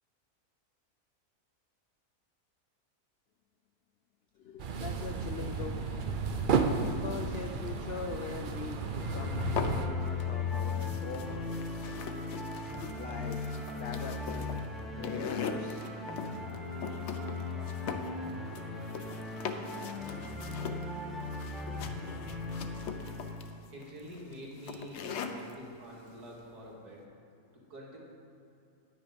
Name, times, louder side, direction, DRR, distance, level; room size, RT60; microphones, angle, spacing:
voice 1, 4.4-6.0 6.5-11.5 13.0-14.6 15.0-15.9, left 6 dB, 85° left, 6 dB, 0.5 m, -42 dB
sound 1, 4.6-9.9, right 5 dB, 60° right, 0.5 m, -33 dB
sound 2, 9.0-23.5, left 3 dB, ahead, 0.9 m, -37 dB
sound 3, 9.4-10.2 10.5-25.5, left 6 dB, 60° left, 0.8 m, -41 dB
voice 2, 23.7-27.1 27.5-28.0, equal, 80° right, -4 dB, 2.7 m, -47 dB
9.7 x 9.4 x 5.2 m, 2.7 s
omnidirectional pair, 1.6 m